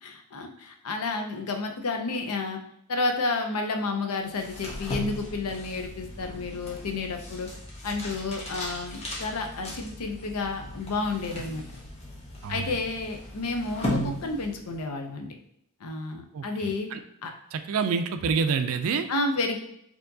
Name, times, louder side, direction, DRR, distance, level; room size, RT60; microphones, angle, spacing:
voice 1, 0.0-2.6 2.9-7.5 7.8-11.6 12.5-15.3 15.8-16.9 17.2-17.3 19.1-19.6, left 3 dB, 85° left, 5 dB, 0.6 m, -31 dB
sound 1, 4.3-14.9, left 1 dB, 30° left, 0.8 m, -37 dB
voice 2, 12.4-12.8 16.3-17.0 17.5-19.1, right 5 dB, 65° right, 9 dB, 0.4 m, -28 dB
4.4 x 2.8 x 2.7 m, 0.74 s
head